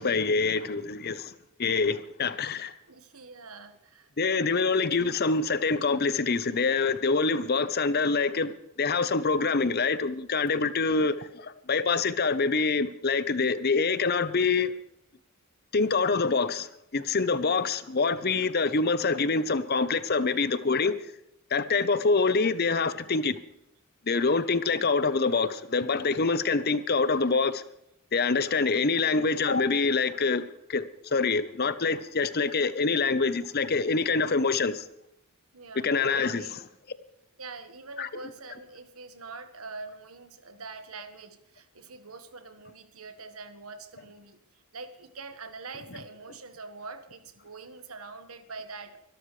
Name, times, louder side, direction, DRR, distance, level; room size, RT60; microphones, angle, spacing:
voice 1, 0.0-1.3 1.6-2.7 4.2-14.7 15.7-21.0 21.5-23.4 24.1-27.6 28.1-30.4 30.7-34.8 35.7-36.6 38.0-38.1, left 4 dB, 45° left, 0.8 m, -25 dB
voice 2, 2.9-4.1 10.8-11.1 20.1-20.4 35.5-35.9 36.3-36.6 37.4-49.0, right 3 dB, 75° right, 1.5 m, -44 dB
24.0 x 12.5 x 3.3 m
head